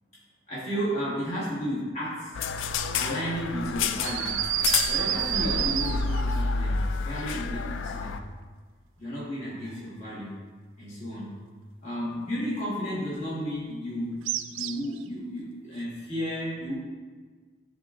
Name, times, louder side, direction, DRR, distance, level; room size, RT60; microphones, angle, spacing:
voice 1, 0.5-2.4 2.9-4.4 4.9-8.2 9.0-10.3 10.8-11.4 11.8-14.2 14.5-16.7, equal, 35° left, -9 dB, 1.6 m, -33 dB
sound 1, 2.3-8.2, left 4 dB, 70° left, 0.3 m, -29 dB
sound 2, 4.0-6.3 14.3-15.0, right 12 dB, 75° right, 0.3 m, -28 dB
11.0 x 3.7 x 2.5 m, 1.4 s
head